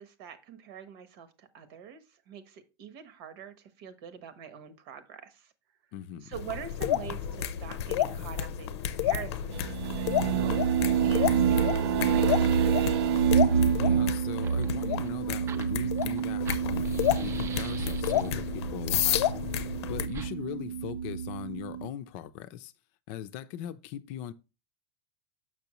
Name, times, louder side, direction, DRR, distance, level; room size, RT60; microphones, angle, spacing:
voice 1, 0.0-5.5 6.2-10.6 11.0-12.9, right 7 dB, 60° right, 1.1 m, -44 dB
voice 2, 5.9-6.3 13.7-19.2 19.9-22.7 23.1-24.3, left 11 dB, 45° left, 0.5 m, -40 dB
sound 1, 6.3-20.1, left 10 dB, 85° left, 0.7 m, -31 dB
sound 2, 9.5-21.9, right 8 dB, 75° right, 0.6 m, -28 dB
Fire, 13.9-18.5 20.1-20.3, right 6 dB, 20° right, 0.4 m, -46 dB
6.9 x 6.1 x 3.0 m
supercardioid pair, 155°, 14 cm